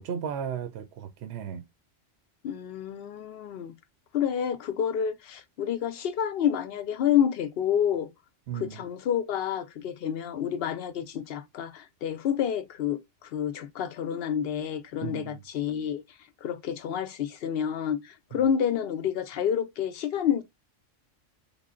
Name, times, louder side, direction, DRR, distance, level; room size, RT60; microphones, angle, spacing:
voice 1, 0.0-1.6 8.5-8.8 15.0-15.4 18.3-18.4, right 8 dB, 65° right, 0.8 m, -35 dB
voice 2, 2.4-3.7 4.1-8.1 8.5-16.0 16.4-20.4, left 9 dB, 65° left, 0.7 m, -29 dB
3.5 x 2.0 x 3.6 m
omnidirectional pair, 1.3 m